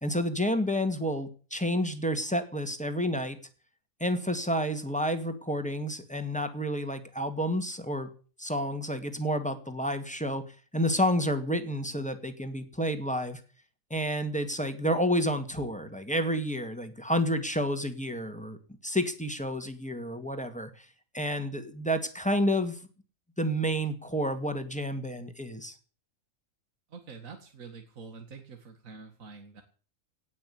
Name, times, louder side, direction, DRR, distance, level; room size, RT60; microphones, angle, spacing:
voice 1, 0.0-3.4 4.0-8.1 8.4-10.4 10.7-13.4 13.9-18.6 18.8-20.9 21.1-22.8 23.4-25.7, equal, 5° left, 7 dB, 1.9 m, -30 dB
voice 2, 26.9-29.6, right 4 dB, 70° right, 5 dB, 2.3 m, -46 dB
18.0 x 6.3 x 9.9 m, 0.40 s
omnidirectional pair, 1.5 m